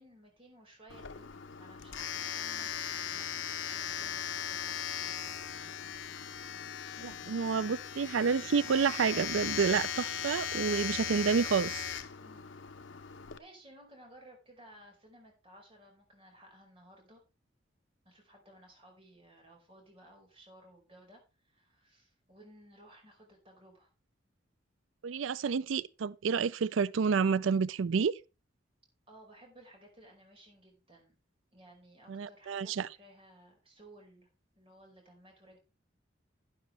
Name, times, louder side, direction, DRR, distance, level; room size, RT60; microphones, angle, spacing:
voice 1, 0.0-3.4 3.7-5.9 12.2-12.5 13.4-17.2 18.0-23.9 29.1-31.1 31.5-34.3 34.6-35.6, right 1 dB, 30° right, 4.9 m, -57 dB
Domestic sounds home sounds, 0.9-13.4, left 8 dB, 75° left, 0.9 m, -38 dB
voice 2, 7.0-11.8 25.0-28.1 32.1-32.9, right 5 dB, 90° right, 0.4 m, -29 dB
11.5 x 10.5 x 3.3 m
head